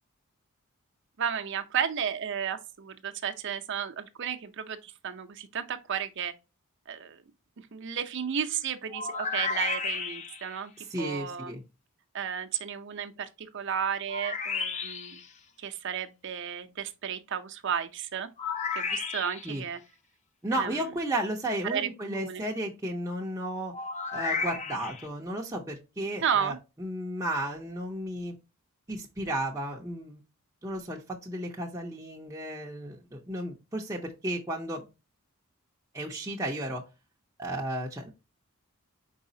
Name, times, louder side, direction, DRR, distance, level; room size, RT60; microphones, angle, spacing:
voice 1, 1.2-6.3 6.9-7.2 7.7-10.7 11.0-11.6 12.1-15.2 15.6-18.3 18.7-19.8 20.5-20.8 21.6-22.4 26.2-26.6, right 8 dB, 55° right, 0.6 m, -33 dB
sound 1, 8.9-10.6 14.1-15.3 18.4-19.6 23.7-25.1, left 5 dB, 35° left, 0.5 m, -33 dB
voice 2, 10.8-11.6 19.4-19.6 20.4-23.7 24.1-28.3 28.9-30.2 30.6-34.8 35.9-36.8 37.4-38.1, right 1 dB, 15° right, 0.6 m, -33 dB
4.7 x 4.0 x 2.7 m
head